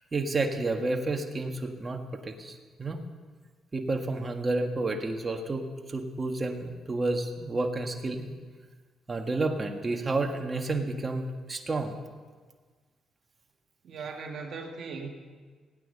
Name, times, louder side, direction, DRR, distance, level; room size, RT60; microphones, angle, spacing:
voice 1, 0.1-3.0 3.7-8.3 9.1-12.0, right 2 dB, 30° right, 4 dB, 1.7 m, -30 dB
voice 2, 13.8-15.1, right 4 dB, 60° right, 2 dB, 1.9 m, -38 dB
17.0 x 9.4 x 6.8 m, 1.5 s
cardioid pair, 90°, 0 cm